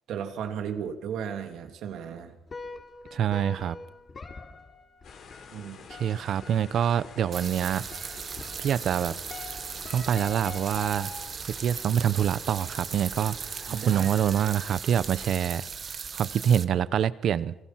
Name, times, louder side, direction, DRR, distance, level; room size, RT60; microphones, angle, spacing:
voice 1, 0.1-2.4 5.5-5.8 13.7-14.1, right 7 dB, 80° right, 2.8 m, -35 dB
sound 1, 2.5-11.5, left 4 dB, 40° left, 4.0 m, -44 dB
voice 2, 3.1-3.8 5.9-7.8 8.6-9.1 9.9-11.1 11.6-17.5, right 9 dB, 65° right, 0.9 m, -26 dB
sound 2, 5.0-15.3, left 6 dB, 70° left, 4.4 m, -49 dB
sound 3, 7.3-16.6, right 6 dB, 50° right, 1.3 m, -38 dB
28.0 x 22.5 x 5.9 m
cardioid pair, 90°, 0 cm